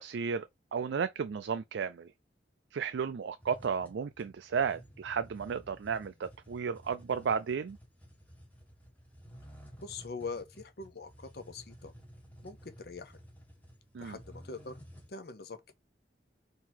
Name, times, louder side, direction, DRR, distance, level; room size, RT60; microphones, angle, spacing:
voice 1, 0.0-2.1 2.7-7.8 13.9-14.2, right 6 dB, 80° right, 0.4 m, -33 dB
sound 1, 3.4-15.1, equal, 10° left, 1.1 m, -54 dB
voice 2, 9.8-11.9 12.4-13.2 14.0-14.7 15.1-15.7, left 4 dB, 55° left, 0.7 m, -43 dB
4.0 x 2.8 x 4.3 m
head